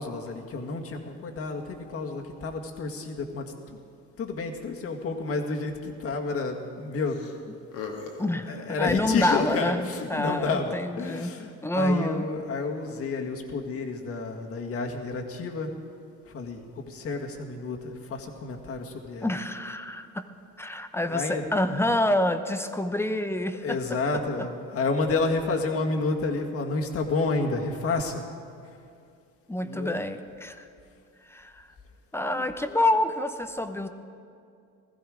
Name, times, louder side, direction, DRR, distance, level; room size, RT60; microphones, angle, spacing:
voice 1, 0.0-3.8 4.2-7.3 8.4-15.8 16.2-19.3 21.0-21.4 23.5-28.2 28.6-28.8 29.6-30.0 32.3-32.5, left 3 dB, 50° left, 2 dB, 1.9 m, -30 dB
sound 1, 7.1-7.3 7.6-8.3 9.1-9.4, left 5 dB, 85° left, 1.9 m, -38 dB
voice 2, 8.2-11.3 11.6-12.2 19.2-20.3 20.6-23.8 29.5-30.7 31.2-31.7 32.1-33.9, left 1 dB, 10° left, 8 dB, 0.8 m, -27 dB
17.0 x 14.5 x 5.0 m, 2.4 s
cardioid pair, 100°, 30 cm